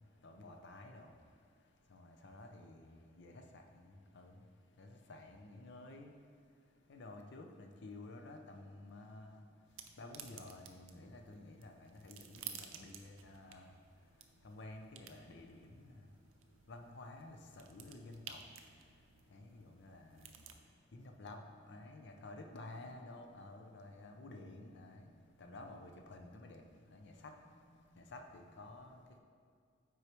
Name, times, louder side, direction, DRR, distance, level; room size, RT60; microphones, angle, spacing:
voice 1, 0.2-1.1 1.9-4.4 4.8-6.1 6.9-9.4 10.0-13.7 14.4-16.1 16.7-18.4 19.3-20.4 20.9-21.4 21.7-25.1 25.4-27.3 28.0-29.0, left 2 dB, 60° left, 4 dB, 0.6 m, -52 dB
sound 1, 9.7-20.6, right 8 dB, 85° right, 0.5 m, -55 dB
8.0 x 4.6 x 3.0 m, 2.2 s
head